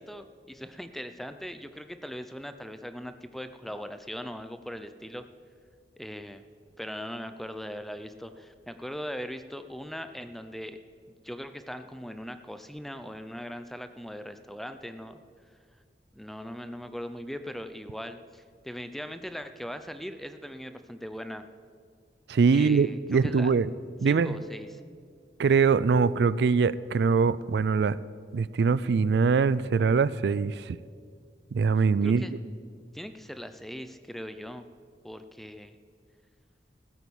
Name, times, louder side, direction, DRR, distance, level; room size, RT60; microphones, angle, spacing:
voice 1, 0.0-5.2 6.0-6.4 6.8-10.8 11.1-15.2 16.1-21.4 22.5-23.5 24.0-24.8 32.0-32.3 32.9-34.7 35.0-35.7, equal, ahead, 9 dB, 0.5 m, -40 dB
voice 2, 22.3-23.7 24.0-24.4 25.4-28.0 28.3-30.8 31.5-32.2, right 5 dB, 75° right, 19 dB, 0.4 m, -23 dB
15.5 x 9.1 x 7.1 m, 2.1 s
head